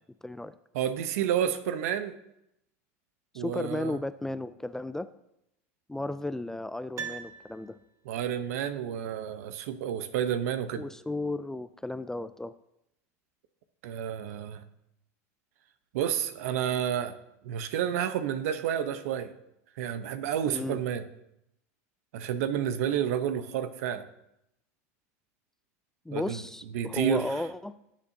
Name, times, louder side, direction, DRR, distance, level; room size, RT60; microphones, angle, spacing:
voice 1, 0.2-0.6 3.3-5.1 5.9-7.8 10.7-12.5 20.5-20.8 26.1-27.7, left 2 dB, 5° left, 13 dB, 0.3 m, -34 dB
voice 2, 0.7-2.2 3.3-4.0 8.0-10.8 13.8-14.6 15.9-17.2 17.4-19.3 19.8-21.0 22.1-24.0 26.1-26.4 26.7-27.3, right 9 dB, 75° right, 12 dB, 0.9 m, -30 dB
Piano, 6.9-8.2 8.5-8.6, right 7 dB, 35° right, 1.4 m, -41 dB
17.5 x 7.4 x 2.8 m, 0.82 s
supercardioid pair, 120°, 8 cm